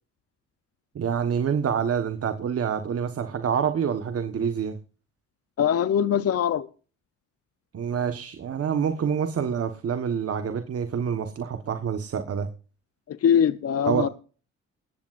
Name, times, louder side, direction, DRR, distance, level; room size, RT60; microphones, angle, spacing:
voice 1, 0.9-4.8 7.7-12.5 13.9-14.1, right 7 dB, 50° right, 1.4 m, -27 dB
voice 2, 5.6-6.7 13.1-14.1, left 8 dB, 50° left, 0.8 m, -22 dB
20.0 x 15.5 x 2.6 m
cardioid pair, 90°, 30 cm